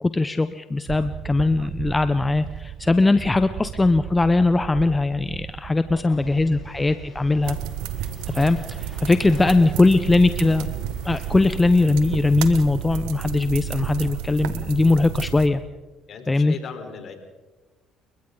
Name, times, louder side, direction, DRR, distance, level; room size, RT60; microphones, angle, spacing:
voice 1, 0.0-7.6 8.3-10.7 11.0-15.6 16.3-16.5, left 2 dB, 20° left, 11 dB, 1.0 m, -20 dB
sound 1, 0.9-13.7 14.1-14.4, right 10 dB, 55° right, 0.6 m, -39 dB
voice 2, 5.9-6.8 9.4-10.0 16.1-17.1, left 6 dB, 55° left, 4 dB, 4.5 m, -40 dB
sound 2, 6.1-11.3, left 4 dB, 35° left, 3.5 m, -50 dB
sound 3, 7.4-15.5, right 9 dB, 75° right, 1.4 m, -31 dB
29.5 x 23.0 x 4.0 m, 1.2 s
hypercardioid pair, 60°, 0 cm